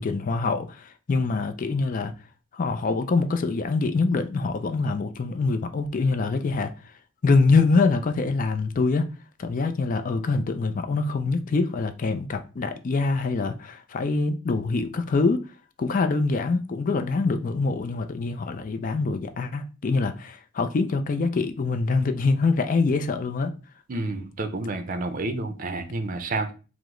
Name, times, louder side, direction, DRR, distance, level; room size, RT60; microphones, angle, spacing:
voice 1, 0.0-2.1 2.5-6.7 7.2-9.1 9.4-15.4 15.8-23.5, left 3 dB, 40° left, 0.4 m, -24 dB
voice 2, 23.9-26.5, right 2 dB, 45° right, 0.5 m, -29 dB
4.8 x 2.0 x 3.7 m
head